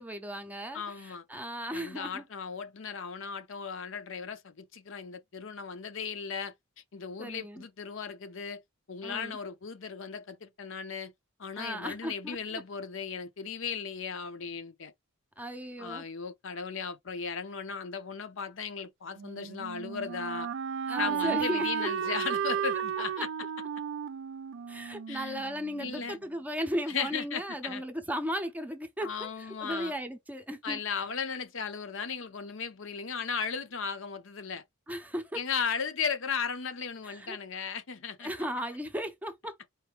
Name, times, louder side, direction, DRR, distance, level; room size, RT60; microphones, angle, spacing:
voice 1, 0.0-2.2 7.2-7.6 9.0-9.4 11.6-12.4 15.4-16.0 20.9-22.1 24.7-30.8 34.9-35.4 37.0-37.4 38.2-39.7, equal, 5° right, 0.6 m, -36 dB
voice 2, 0.7-1.2 1.7-6.5 6.9-8.6 8.9-11.1 11.4-14.9 15.8-20.5 21.0-23.3 25.1-25.3 25.8-26.2 26.9-27.8 29.0-29.9 30.6-34.6 35.3-38.3, left 6 dB, 60° left, 0.7 m, -36 dB
Wind instrument woodwind instrument, 19.2-26.0, right 7 dB, 60° right, 0.3 m, -34 dB
4.6 x 2.7 x 3.2 m
head